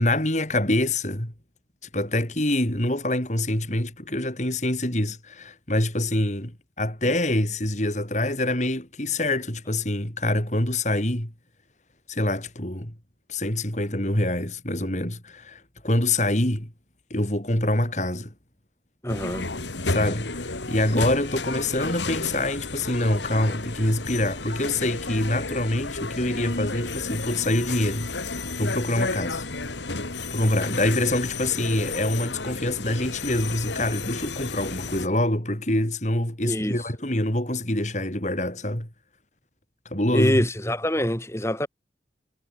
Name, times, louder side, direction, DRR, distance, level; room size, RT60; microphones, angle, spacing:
voice 1, 0.0-1.3 1.9-11.3 12.1-12.9 13.3-16.7 17.1-18.3 19.8-29.5 30.3-38.9 39.8-40.4, left 1 dB, 40° left, 4.7 m, -25 dB
voice 2, 19.0-19.5 36.4-36.8 40.1-41.7, equal, 15° left, 4.6 m, -25 dB
sound 1, 19.1-35.1, left 3 dB, 85° left, 2.7 m, -32 dB
head